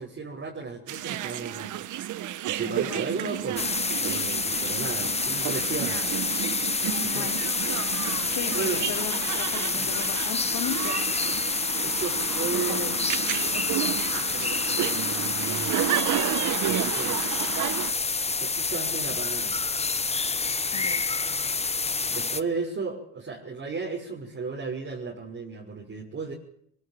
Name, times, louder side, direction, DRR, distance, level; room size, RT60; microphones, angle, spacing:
voice 1, 0.0-3.7 4.0-6.1 7.0-7.3 8.5-8.8 9.7-9.9 11.8-13.0 14.1-15.8 16.6-17.5 18.4-19.6 22.0-26.3, right 4 dB, 45° right, -2 dB, 6.1 m, -35 dB
sound 1, 0.9-17.9, right 12 dB, 80° right, 1.3 m, -32 dB
voice 2, 2.7-3.1 7.0-7.5 7.9-11.7 12.6-13.1 20.7-21.1, left 10 dB, 80° left, 8 dB, 2.9 m, -37 dB
sound 2, 3.6-22.4, left 4 dB, 20° left, 1.0 m, -28 dB
23.0 x 22.5 x 7.6 m, 0.68 s
cardioid pair, 90°, 30 cm